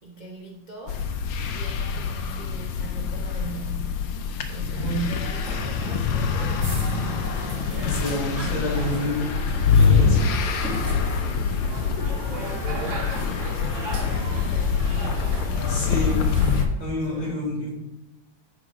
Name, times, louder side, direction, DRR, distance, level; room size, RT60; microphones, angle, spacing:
voice 1, 0.0-1.1 1.5-4.2 4.5-8.7 9.7-10.2 10.6-11.6 12.3-16.0 16.9-17.5, right 3 dB, 65° right, -1 dB, 0.4 m, -41 dB
sound 1, 0.9-16.7, left 6 dB, 80° left, 1.6 m, -25 dB
sound 2, 4.9-16.7, right 2 dB, 40° right, 1.5 m, -36 dB
voice 2, 7.8-9.3 9.7-10.2 15.7-16.2 16.8-17.7, left 1 dB, 60° left, -3 dB, 3.3 m, -28 dB
11.5 x 3.9 x 4.9 m, 0.94 s
omnidirectional pair, 2.3 m